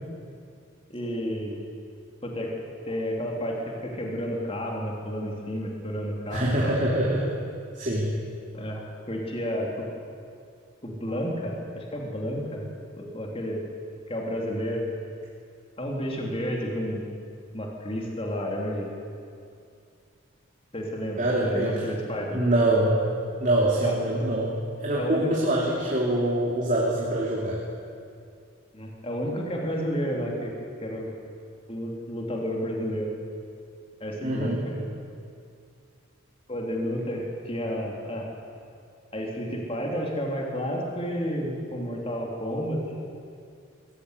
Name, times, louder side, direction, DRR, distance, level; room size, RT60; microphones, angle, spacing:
voice 1, 0.9-1.6 2.2-2.5 2.9-6.7 8.5-9.8 10.8-12.6 13.0-13.6 14.1-14.8 15.8-17.1 17.5-18.9 20.7-22.4 23.8-23.9 24.9-25.3 28.7-30.5 30.8-31.1 31.7-33.1 34.0-34.8 36.5-38.3 39.1-42.8, equal, 25° left, 0 dB, 3.3 m, -31 dB
voice 2, 6.3-7.3 7.7-8.2 21.2-21.8 22.3-23.1 23.4-27.6 34.2-34.6, right 1 dB, 35° right, -4 dB, 3.0 m, -24 dB
22.0 x 16.0 x 9.9 m, 2.4 s
head